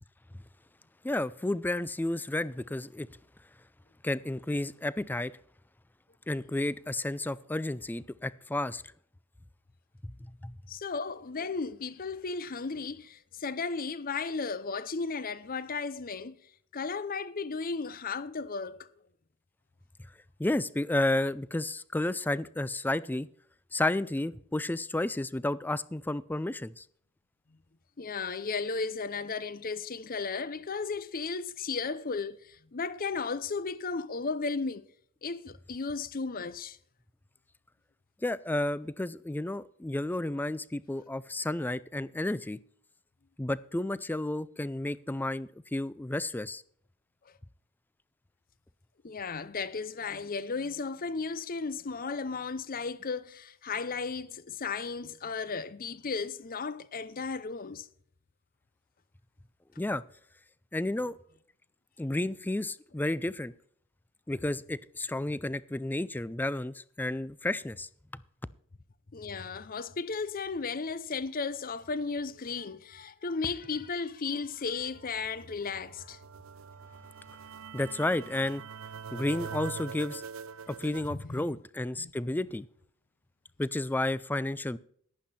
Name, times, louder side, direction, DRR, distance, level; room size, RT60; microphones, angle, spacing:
voice 1, 1.0-3.1 4.0-5.3 6.3-8.8 10.4-10.5 20.4-23.3 23.7-26.8 38.2-42.6 43.4-46.6 59.8-60.0 60.7-61.2 62.0-63.5 64.3-67.9 77.7-78.6 79.1-80.2 80.7-82.7 83.6-84.8, left 1 dB, 10° left, 0.4 m, -31 dB
voice 2, 10.7-16.4 16.7-18.9 28.0-34.8 35.2-36.8 49.0-57.9 69.1-76.2 81.1-81.5 82.0-82.1, left 4 dB, 45° left, 0.7 m, -35 dB
sound 1, 74.6-81.1, right 6 dB, 70° right, 0.6 m, -44 dB
11.5 x 10.5 x 4.2 m
head